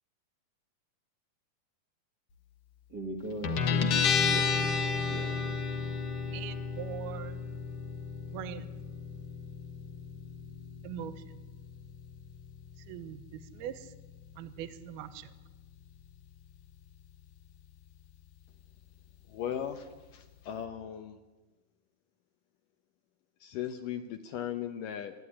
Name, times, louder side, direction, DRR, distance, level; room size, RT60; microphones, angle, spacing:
voice 1, 2.9-4.7 5.1-5.5, right 1 dB, 35° right, 4 dB, 2.1 m, -40 dB
Guitar, 3.4-20.6, left 5 dB, 55° left, 1.8 m, -35 dB
voice 2, 4.8-5.5 6.3-7.4 8.3-8.6 10.8-11.4 12.9-13.9 14.4-15.3, right 10 dB, 75° right, 13 dB, 2.8 m, -42 dB
voice 3, 19.3-21.2 23.4-25.1, left 9 dB, 75° left, 8 dB, 2.1 m, -37 dB
27.5 x 10.5 x 9.8 m, 1.2 s
omnidirectional pair, 4.7 m